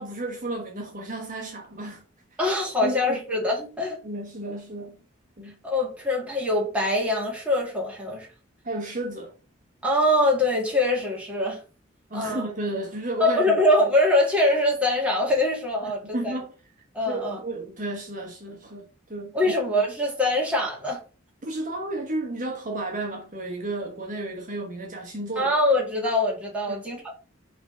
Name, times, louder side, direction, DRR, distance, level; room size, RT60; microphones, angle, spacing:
voice 1, 0.0-2.0 2.3-2.4 2.8-3.2 4.0-5.0 5.4-5.6 8.6-9.3 12.1-13.6 15.8-16.5 17.1-19.3 21.4-25.5 26.7-26.8, right 2 dB, 40° right, 1.2 m, -32 dB
voice 2, 2.4-4.0 5.6-8.3 9.8-11.6 12.1-12.4 13.2-16.4 16.9-17.4 19.3-21.0 25.4-27.1, left 1 dB, 5° right, 2.1 m, -23 dB
4.9 x 3.5 x 5.5 m
head